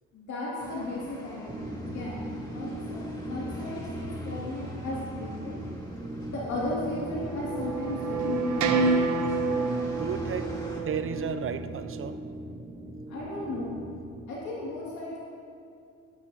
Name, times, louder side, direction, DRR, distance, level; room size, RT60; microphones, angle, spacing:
voice 1, 0.1-5.6 6.3-9.0 13.1-13.7 14.3-15.2, left 2 dB, 70° left, -6 dB, 2.2 m, -35 dB
sound 1, 0.6-10.8, equal, 15° left, 2.3 m, -46 dB
sound 2, 1.5-14.3, right 1 dB, 15° right, 0.8 m, -39 dB
sound 3, 6.3-12.1, right 4 dB, 75° right, 0.9 m, -29 dB
voice 2, 9.9-10.6 10.8-12.2, right 7 dB, 45° right, 10 dB, 0.6 m, -33 dB
12.5 x 12.0 x 2.7 m, 2.4 s
cardioid pair, 90°, 30 cm